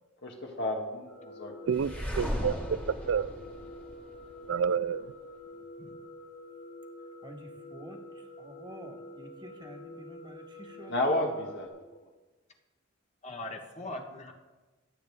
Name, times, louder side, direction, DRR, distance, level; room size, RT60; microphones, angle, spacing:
voice 1, 0.2-1.5 10.9-11.7, left 1 dB, 55° left, 2.2 m, -31 dB
sound 1, 1.1-11.7, left 1 dB, 70° left, 4.9 m, -47 dB
sound 2, 1.7-4.7, equal, 5° left, 1.7 m, -36 dB
voice 2, 1.7-2.8 3.1-3.3 4.5-5.1, right 7 dB, 65° right, 0.4 m, -29 dB
voice 3, 7.2-11.3 13.7-14.0, right 1 dB, 20° right, 1.7 m, -49 dB
voice 4, 13.2-14.3, left 2 dB, 35° left, 1.4 m, -40 dB
24.5 x 8.5 x 3.6 m
head